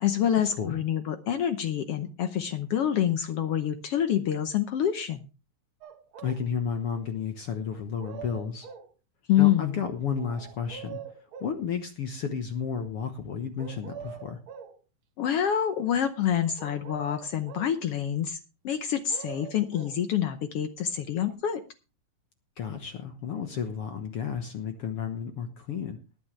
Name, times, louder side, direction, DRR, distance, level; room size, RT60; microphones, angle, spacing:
voice 1, 0.0-5.2 9.3-9.8 15.2-18.4 18.6-21.6, left 10 dB, 75° left, 9 dB, 1.3 m, -27 dB
sound 1, 5.8-6.4 7.7-8.9 10.2-11.6 13.6-14.8 16.6-17.8 18.8-20.0 21.3-21.4, right 8 dB, 60° right, 1.4 m, -44 dB
voice 2, 6.2-8.7 9.4-11.0 11.4-14.4 22.6-26.0, left 7 dB, 55° left, 7 dB, 1.7 m, -32 dB
20.5 x 8.9 x 3.2 m, 0.31 s
omnidirectional pair, 3.8 m